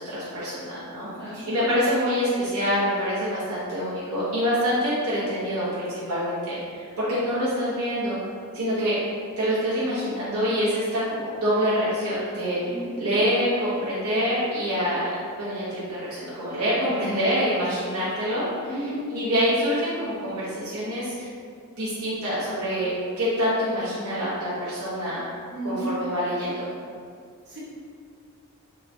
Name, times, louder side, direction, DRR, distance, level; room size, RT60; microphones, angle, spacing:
voice 1, 0.0-8.2 8.5-9.0 9.4-12.7 13.0-15.1 15.4-18.7 19.1-21.3 21.8-22.9 23.2-25.2 25.6-26.7, equal, 80° right, -10 dB, 0.9 m, -26 dB
voice 2, 1.2-1.7 12.6-13.0 18.6-19.0 25.5-25.9 27.4-27.6, right 1 dB, 50° right, -10 dB, 1.3 m, -33 dB
3.1 x 2.5 x 3.3 m, 2.2 s
head